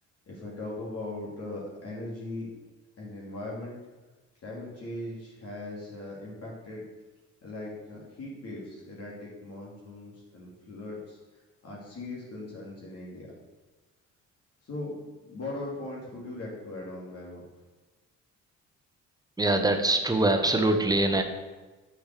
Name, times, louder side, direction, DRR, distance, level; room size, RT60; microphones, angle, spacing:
voice 1, 0.3-2.5 3.0-3.8 4.4-6.8 7.4-11.2 11.6-13.3 14.6-15.0 15.2-17.4, left 2 dB, 50° left, -5 dB, 2.7 m, -39 dB
voice 2, 19.4-21.2, right 2 dB, 15° right, 5 dB, 1.1 m, -23 dB
7.0 x 5.9 x 6.6 m, 1.2 s
cardioid pair, 90°, 30 cm